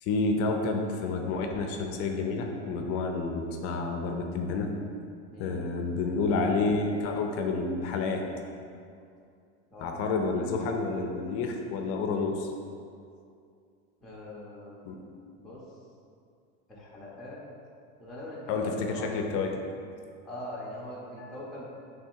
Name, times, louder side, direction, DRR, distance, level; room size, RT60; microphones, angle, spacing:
voice 1, 0.0-4.7 5.4-8.2 9.8-12.5 14.9-15.0 18.5-19.5 21.2-21.3, left 3 dB, 40° left, 3 dB, 0.5 m, -29 dB
voice 2, 5.3-5.6 9.7-10.7 14.0-14.9 15.4-15.7 16.7-17.4 18.0-19.1 20.2-21.6, left 1 dB, ahead, -7 dB, 0.6 m, -42 dB
3.4 x 3.3 x 4.5 m, 2.4 s
supercardioid pair, 140°, 36 cm